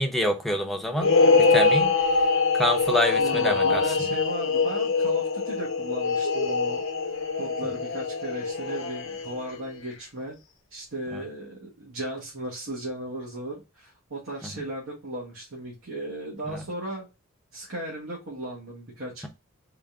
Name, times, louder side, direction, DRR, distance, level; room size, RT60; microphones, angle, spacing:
voice 1, 0.0-1.1 1.5-1.9 2.5-3.8 11.1-11.2 16.5-16.6, equal, ahead, 0.7 m, -26 dB
sound 1, 1.0-9.5, left 4 dB, 70° left, 0.9 m, -24 dB
voice 2, 1.2-1.6 3.2-6.9 7.4-10.4 10.7-17.1 17.5-19.3, right 1 dB, 70° right, 1.3 m, -36 dB
3.8 x 2.5 x 3.4 m
head